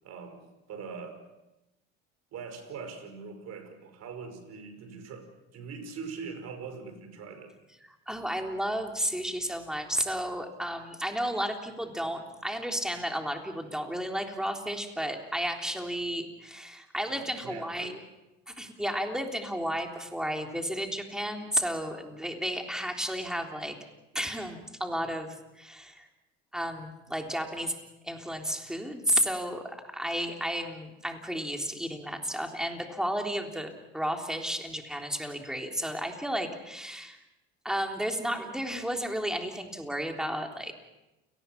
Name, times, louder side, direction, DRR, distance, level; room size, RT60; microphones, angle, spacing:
voice 1, 0.0-0.4 0.7-1.2 2.3-7.6 17.1-18.0 25.0-25.1, right 5 dB, 55° right, 8 dB, 5.3 m, -42 dB
voice 2, 8.1-18.0 18.5-23.8 24.1-25.3 25.6-26.1 26.5-27.8 28.0-37.2 37.6-40.7, equal, ahead, 3 dB, 3.6 m, -32 dB
29.5 x 19.0 x 6.0 m, 0.97 s
supercardioid pair, 85°, 30 cm